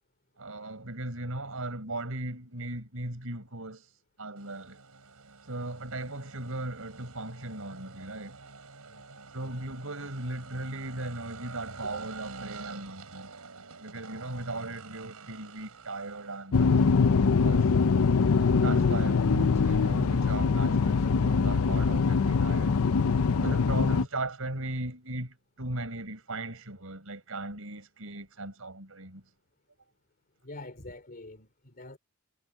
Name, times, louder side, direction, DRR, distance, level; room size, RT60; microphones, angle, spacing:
voice 1, 0.4-3.9 4.2-4.8 5.4-8.4 9.3-13.3 13.8-17.7 18.5-22.8 23.4-29.2, right 2 dB, 65° right, 4.9 m, -37 dB
sound 1, 4.4-24.2, right 4 dB, 85° right, 4.6 m, -50 dB
sound 2, 16.5-24.1, left 5 dB, 70° left, 0.5 m, -23 dB
voice 2, 30.4-32.0, left 2 dB, 40° left, 2.8 m, -45 dB
head